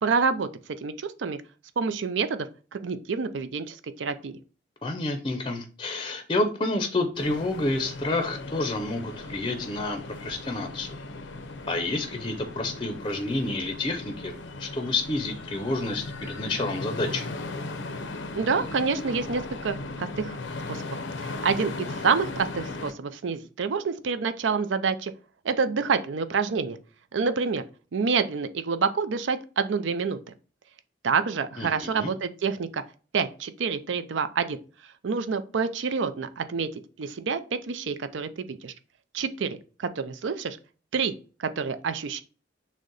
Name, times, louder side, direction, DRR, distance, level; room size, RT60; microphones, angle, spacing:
voice 1, 0.0-0.5 0.8-1.4 1.8-2.5 2.7-4.3 18.3-20.4 20.7-20.9 21.2-25.1 25.4-26.8 27.1-27.6 27.9-30.2 31.0-32.8 33.1-34.6 35.0-36.7 37.0-38.7 39.1-40.6 40.9-41.1 41.4-42.2, right 5 dB, 85° right, 12 dB, 0.5 m, -27 dB
voice 2, 4.8-11.0 11.7-17.3 31.6-32.1, left 2 dB, 25° left, 6 dB, 0.5 m, -29 dB
sound 1, 7.1-22.9, left 2 dB, 85° left, 0.6 m, -37 dB
6.3 x 2.1 x 3.9 m, 0.37 s
head